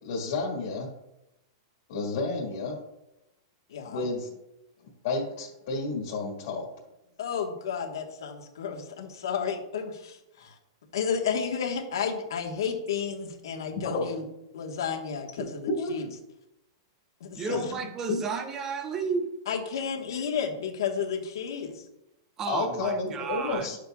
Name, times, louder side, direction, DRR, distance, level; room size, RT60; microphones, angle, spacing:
voice 1, 0.0-0.9 1.9-2.8 3.8-4.3 5.0-6.7 13.8-14.0 15.7-15.9 17.4-17.8 18.1-18.2 22.5-23.8, left 3 dB, 45° left, -3 dB, 1.7 m, -30 dB
voice 2, 3.7-4.1 7.2-10.5 10.9-14.2 14.5-15.6 15.9-16.1 17.2-17.6 19.5-21.8, left 6 dB, 70° left, 3 dB, 1.3 m, -32 dB
voice 3, 17.3-19.3 22.4-23.7, right 5 dB, 15° right, 7 dB, 0.6 m, -32 dB
11.0 x 6.7 x 2.3 m, 0.91 s
supercardioid pair, 180°, 2 cm